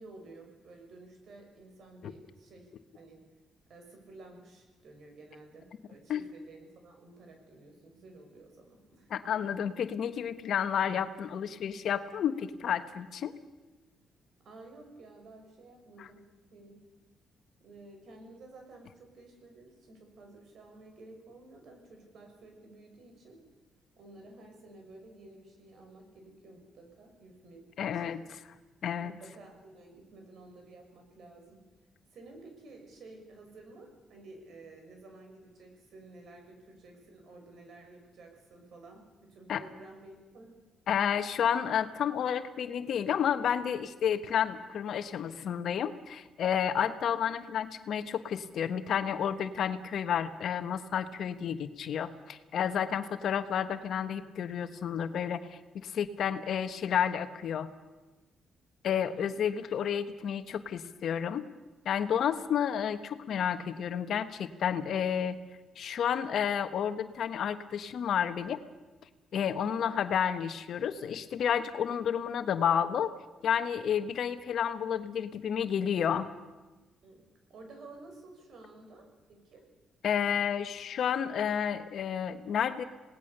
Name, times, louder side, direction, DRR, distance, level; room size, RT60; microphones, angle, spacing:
voice 1, 0.0-3.2 3.7-9.1 14.4-16.2 16.5-16.8 17.6-23.4 24.0-28.1 29.0-31.6 32.1-40.6 52.9-53.2 58.9-59.3 69.5-69.9 77.0-77.2 77.5-79.7, right 2 dB, 65° right, 3 dB, 6.3 m, -52 dB
voice 2, 9.1-13.3 27.8-28.2 28.8-29.1 39.5-39.6 40.9-57.7 58.8-61.4 61.8-65.4 65.8-68.6 69.3-73.1 73.4-76.3 80.0-82.8, left 8 dB, 65° left, 10 dB, 1.3 m, -31 dB
27.5 x 19.0 x 6.8 m, 1.2 s
cardioid pair, 90°, 0 cm